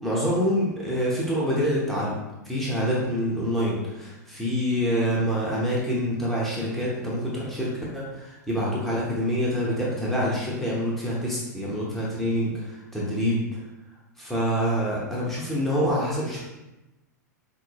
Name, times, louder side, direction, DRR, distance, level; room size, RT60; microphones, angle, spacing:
voice 1, 0.0-2.2 2.4-13.6 14.2-16.4, equal, ahead, -6 dB, 0.9 m, -26 dB
5.9 x 2.0 x 2.9 m, 1.0 s
figure-of-eight pair, 95°, 10 cm